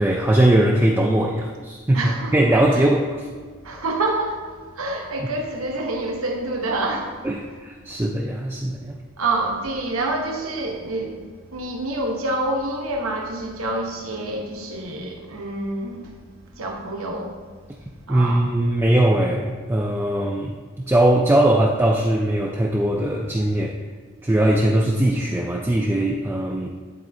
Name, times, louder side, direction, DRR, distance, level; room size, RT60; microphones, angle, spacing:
voice 1, 0.0-2.0 2.3-3.3 7.2-9.0 18.1-20.5 20.9-23.8 24.2-26.7, right 1 dB, 10° right, -2 dB, 0.3 m, -20 dB
voice 2, 1.9-2.9 3.6-7.3 9.2-11.2 11.5-16.1 16.6-17.4 18.1-18.5, right 2 dB, 75° right, 1 dB, 1.0 m, -27 dB
10.5 x 4.1 x 2.7 m, 1.5 s
head